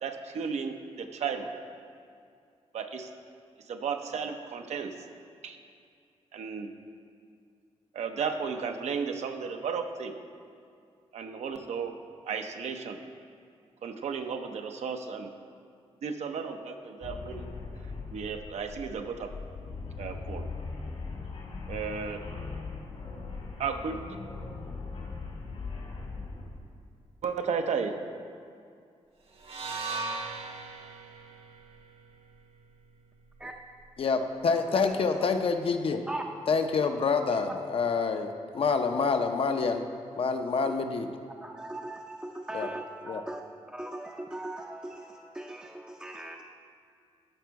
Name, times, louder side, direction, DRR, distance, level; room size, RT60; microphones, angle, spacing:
voice 1, 0.0-1.5 2.7-3.1 3.7-4.9 5.4-5.6 6.3-6.7 7.9-10.1 11.1-11.9 12.2-13.0 13.8-15.3 16.0-17.5 18.1-19.3 20.0-20.5 21.7-22.2 23.6-24.0 27.2-27.9, right 6 dB, 75° right, 6 dB, 0.7 m, -34 dB
sound 1, 17.0-26.6, left 3 dB, 70° left, 2.1 m, -40 dB
sound 2, 29.4-33.6, right 3 dB, 55° right, 1.0 m, -39 dB
voice 2, 34.0-36.0 36.5-39.8 40.2-41.1 42.5-42.7 43.1-43.2, left 5 dB, 55° left, 6 dB, 0.6 m, -27 dB
voice 3, 41.4-43.4 43.7-46.4, right 1 dB, 10° right, 1 dB, 0.5 m, -39 dB
12.5 x 5.1 x 4.6 m, 2.3 s
cardioid pair, 100°, 11 cm